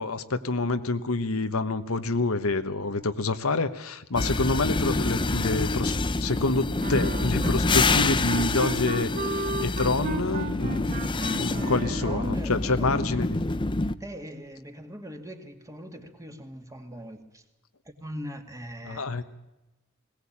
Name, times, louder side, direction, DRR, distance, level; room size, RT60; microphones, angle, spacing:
voice 1, 0.0-10.9 11.4-13.4 18.8-19.2, left 3 dB, 70° left, 10 dB, 1.2 m, -27 dB
sound 1, 4.2-13.9, left 3 dB, 20° left, 0.7 m, -27 dB
sound 2, 6.8-12.4, right 3 dB, 35° right, 0.9 m, -35 dB
voice 2, 11.6-12.9 14.0-17.4 17.8-19.2, equal, 15° right, 5 dB, 2.2 m, -40 dB
21.0 x 18.0 x 8.7 m, 1.0 s
head